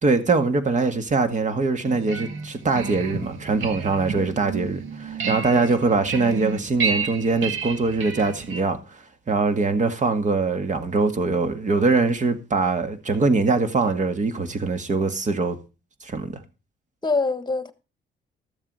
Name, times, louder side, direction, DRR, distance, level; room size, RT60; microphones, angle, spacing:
voice 1, 0.0-15.6 16.0-16.3, right 3 dB, 40° right, 1.9 m, -23 dB
sound 1, 1.8-8.6, right 5 dB, 80° right, 1.7 m, -31 dB
voice 2, 5.5-6.0 17.0-17.7, left 3 dB, 20° left, 1.4 m, -26 dB
14.0 x 7.3 x 4.9 m
cardioid pair, 90°, 20 cm